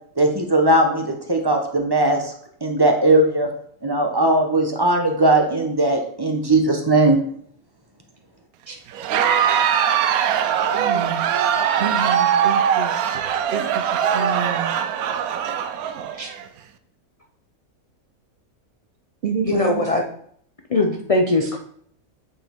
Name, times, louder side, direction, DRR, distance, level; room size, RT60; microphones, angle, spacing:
voice 1, 0.2-2.2 2.6-3.5 3.8-7.2, right 2 dB, 20° right, 3 dB, 0.7 m, -18 dB
Crowd, 8.9-16.4, right 8 dB, 80° right, 1.0 m, -21 dB
voice 2, 10.7-11.3 11.8-12.9 13.5-13.8 14.1-14.7 19.2-19.9, right 6 dB, 55° right, 4 dB, 0.7 m, -28 dB
voice 3, 19.4-20.0 20.7-21.6, left 2 dB, 45° left, 2 dB, 0.4 m, -20 dB
8.6 x 4.6 x 3.5 m, 0.63 s
omnidirectional pair, 1.5 m